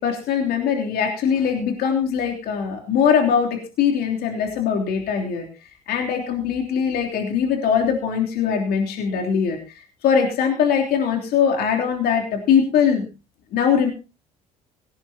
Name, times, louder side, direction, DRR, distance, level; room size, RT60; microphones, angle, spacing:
voice 1, 0.0-5.5 5.9-9.6 10.0-13.1 13.5-13.9, left 7 dB, 60° left, 2 dB, 3.2 m, -21 dB
17.5 x 17.0 x 2.9 m, 0.30 s
hypercardioid pair, 60°, 18 cm